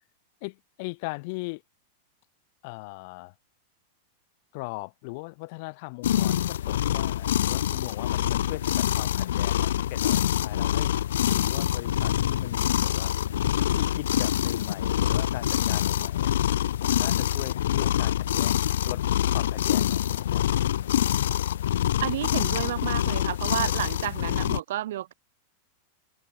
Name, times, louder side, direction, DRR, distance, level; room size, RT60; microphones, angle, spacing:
voice 1, 0.4-1.6 2.6-3.3 4.5-10.9 11.3-13.2 13.5-16.3 16.8-19.0 19.3-20.5, left 28 dB, 50° left, 1.3 m, -39 dB
sound 1, 6.0-24.6, left 11 dB, 85° left, 0.3 m, -25 dB
voice 2, 22.0-25.1, right 13 dB, 70° right, 1.2 m, -31 dB
supercardioid pair, 155°, 0 cm